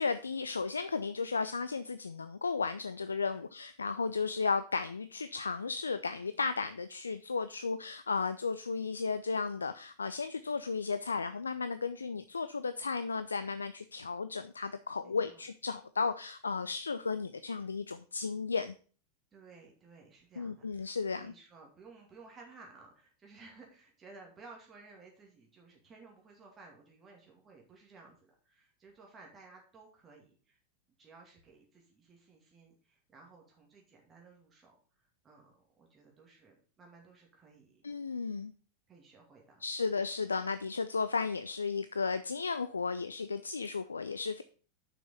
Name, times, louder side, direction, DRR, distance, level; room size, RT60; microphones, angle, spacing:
voice 1, 0.0-18.7 20.4-21.3 37.8-38.5 39.6-44.4, left 4 dB, 75° left, 12 dB, 0.4 m, -34 dB
voice 2, 15.0-15.5 19.3-30.6 31.0-37.8 38.9-39.6, right 4 dB, 20° right, -1 dB, 2.3 m, -57 dB
6.9 x 6.0 x 5.5 m, 0.40 s
figure-of-eight pair, 90°, 0 cm